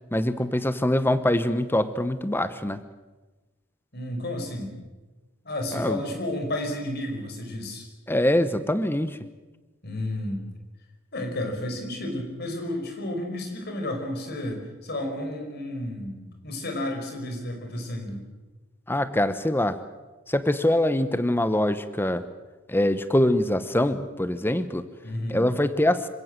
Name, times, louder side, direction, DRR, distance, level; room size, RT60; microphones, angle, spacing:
voice 1, 0.1-2.8 5.7-6.0 8.1-9.2 18.9-19.8 20.3-22.2 22.7-24.8 25.3-26.1, left 1 dB, 10° left, 12 dB, 0.9 m, -24 dB
voice 2, 3.9-4.7 5.4-7.9 9.8-10.4 11.1-18.3 25.0-25.5, left 1 dB, 50° left, 3 dB, 4.9 m, -32 dB
26.5 x 16.5 x 7.5 m, 1.2 s
head